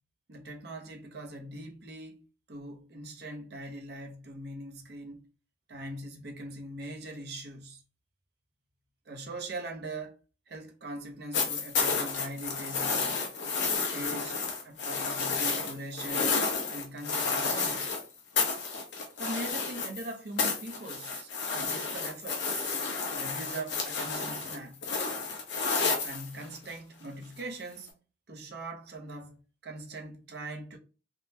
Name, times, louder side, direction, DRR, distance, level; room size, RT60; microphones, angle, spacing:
voice 1, 0.3-5.3 5.7-7.8 9.1-10.1 10.5-13.3 13.8-14.4 14.6-16.3 16.7-17.9 19.2-22.7 23.1-24.8 26.0-27.9 28.3-29.3 29.6-30.8, right 2 dB, 60° right, 0.7 m, -41 dB
sound 1, 11.3-18.0 18.4-20.1 20.4-26.7 27.9-28.0, left 4 dB, 80° left, 0.8 m, -31 dB
3.6 x 2.1 x 2.7 m
head